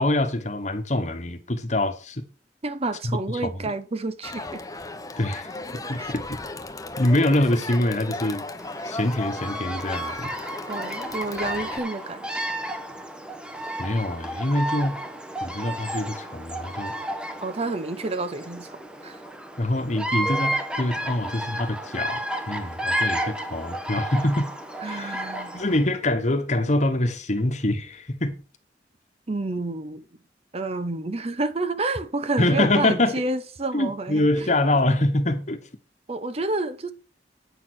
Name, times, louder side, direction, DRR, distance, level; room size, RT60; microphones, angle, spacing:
voice 1, 0.0-2.2 3.3-3.7 5.2-5.5 5.9-6.2 7.0-8.4 8.8-10.3 13.8-15.0 15.4-17.0 19.6-24.5 24.8-25.2 25.5-28.3 32.4-33.2 33.7-35.6, left 1 dB, 40° left, 1.3 m, -24 dB
voice 2, 2.6-4.6 6.0-6.1 10.7-12.3 17.4-19.2 24.8-25.6 29.3-30.0 30.5-34.5 36.1-36.9, right 2 dB, 35° right, 0.8 m, -29 dB
Crowd, 4.2-11.8, left 2 dB, 20° left, 1.0 m, -35 dB
Bird vocalization bird call bird song, 8.6-25.8, right 1 dB, 5° right, 1.2 m, -32 dB
8.9 x 6.7 x 6.3 m
head